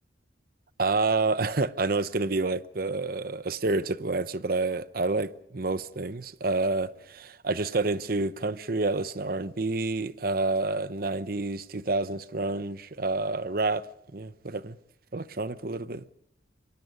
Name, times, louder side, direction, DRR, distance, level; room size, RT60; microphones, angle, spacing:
voice 1, 0.8-13.9 14.1-14.8 15.1-16.0, right 3 dB, 50° right, 0.8 m, -28 dB
28.5 x 24.0 x 5.3 m
head